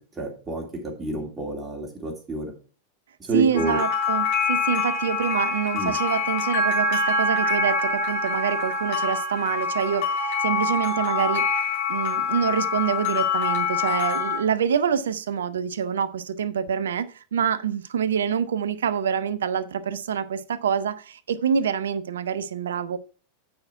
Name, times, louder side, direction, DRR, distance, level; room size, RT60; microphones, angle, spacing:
voice 1, 0.1-2.5 3.2-3.8 5.7-5.9, right 3 dB, 20° right, 2.6 m, -29 dB
voice 2, 3.3-23.0, right 7 dB, 65° right, 0.7 m, -26 dB
sound 1, 3.5-14.4, left 3 dB, 50° left, 3.3 m, -25 dB
8.8 x 5.9 x 4.6 m
figure-of-eight pair, 90°, 0 cm